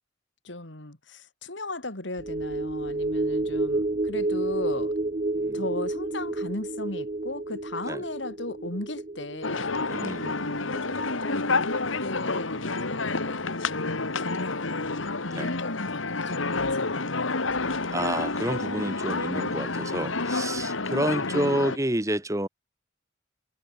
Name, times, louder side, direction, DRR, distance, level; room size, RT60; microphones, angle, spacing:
voice 1, 0.4-5.0 5.5-13.5 13.9-16.4 16.7-17.5 20.8-21.4, left 2 dB, 65° left, 3.4 m, -37 dB
sound 1, 2.2-12.8 13.1-13.3, right 2 dB, 35° right, 0.7 m, -31 dB
sound 2, 9.4-21.8, left 3 dB, 85° left, 2.4 m, -29 dB
voice 2, 9.9-10.4 15.3-15.5 17.9-22.5, right 1 dB, 15° right, 1.7 m, -29 dB
head